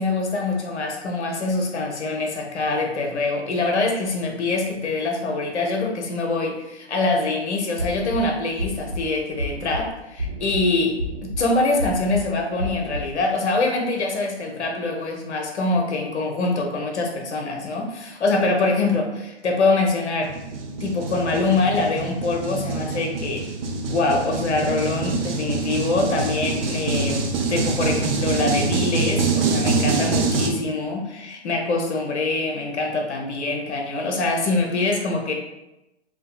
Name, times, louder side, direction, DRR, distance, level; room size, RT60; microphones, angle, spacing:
voice 1, 0.0-20.3 20.8-23.5 23.9-35.3, left 3 dB, 75° left, 1 dB, 0.6 m, -24 dB
sound 1, 7.8-8.2 8.6-9.0 9.4-9.8 10.2-10.6 11.0-11.4 11.8-12.2 12.6-13.0, equal, 85° right, 0.8 m, -29 dB
sound 2, 20.2-30.5, right 3 dB, 60° right, 0.5 m, -25 dB
2.6 x 2.3 x 2.3 m, 0.93 s
figure-of-eight pair, 125°, 34 cm